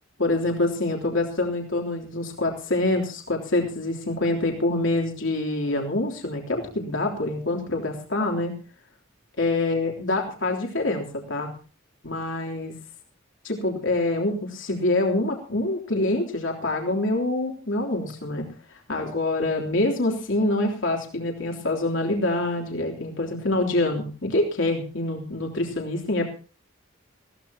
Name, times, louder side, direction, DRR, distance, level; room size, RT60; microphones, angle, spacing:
voice 1, 0.2-8.5 9.4-11.5 12.0-12.7 13.4-26.3, left 2 dB, 65° left, 0 dB, 3.4 m, -26 dB
21.0 x 17.0 x 3.0 m, 0.37 s
head